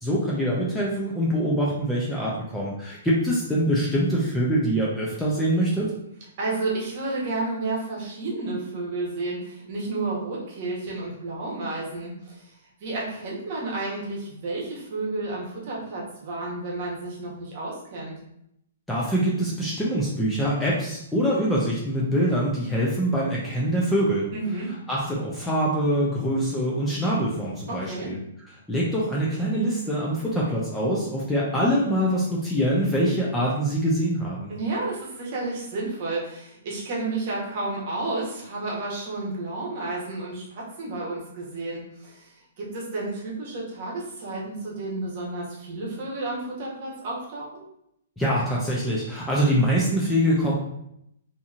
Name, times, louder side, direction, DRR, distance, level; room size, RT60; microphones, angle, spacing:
voice 1, 0.0-5.9 18.9-24.3 24.9-28.2 28.7-34.5 48.2-50.5, equal, 5° left, -6 dB, 0.4 m, -24 dB
voice 2, 6.4-12.5 12.8-18.1 24.3-24.7 27.7-28.1 34.5-47.6, right 2 dB, 40° right, -4 dB, 1.0 m, -31 dB
2.8 x 2.7 x 2.4 m, 0.78 s
hypercardioid pair, 160°, 0 cm